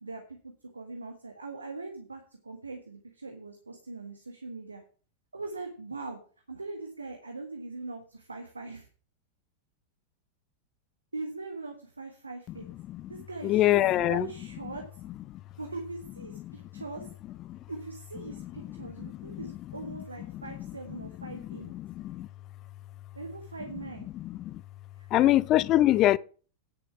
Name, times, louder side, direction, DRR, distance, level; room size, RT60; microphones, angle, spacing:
voice 1, 0.0-0.4 0.7-4.8 5.3-6.2 6.5-8.9 11.1-12.7 13.1-14.8 15.6-17.1 17.7-21.7 23.1-24.1 25.0-25.4, right 3 dB, 80° right, 1.4 m, -41 dB
voice 2, 13.4-14.3 17.5-17.6 19.0-19.5 21.7-22.3 24.2-24.6 25.1-26.2, left 14 dB, 35° left, 0.4 m, -24 dB
10.0 x 6.5 x 5.9 m
figure-of-eight pair, 90°, 0 cm